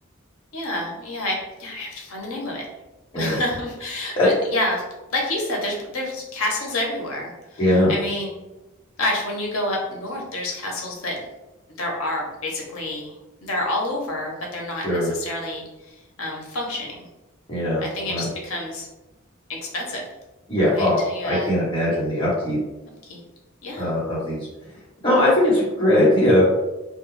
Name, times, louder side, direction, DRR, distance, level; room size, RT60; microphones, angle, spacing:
voice 1, 0.5-2.7 3.2-4.8 5.1-8.4 9.0-11.2 11.7-13.1 13.4-17.0 17.8-18.9 19.5-20.0 20.6-21.5 23.0-23.2 23.6-23.9, left 1 dB, 85° left, -1 dB, 0.7 m, -28 dB
voice 2, 7.6-7.9 14.8-15.1 17.5-17.8 18.1-18.2 20.5-21.0 21.2-22.6 23.8-24.5 25.0-26.5, left 1 dB, 25° left, -8 dB, 1.1 m, -20 dB
2.3 x 2.3 x 3.0 m, 1.0 s
head